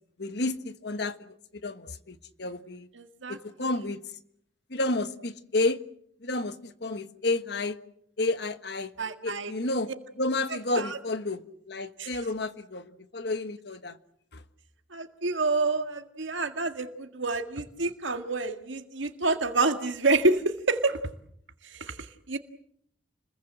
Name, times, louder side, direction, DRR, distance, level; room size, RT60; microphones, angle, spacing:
voice 1, 0.2-1.2 1.6-2.9 3.3-4.0 4.7-5.8 6.2-7.8 8.2-8.9 9.2-9.9 10.2-14.0 14.3-14.4, left 2 dB, 60° left, 1.4 m, -31 dB
voice 2, 2.9-3.7 9.0-9.5 10.5-11.0 12.0-12.2 14.9-21.0 21.6-22.4, right 3 dB, 80° right, 1.9 m, -28 dB
29.5 x 21.5 x 7.7 m
head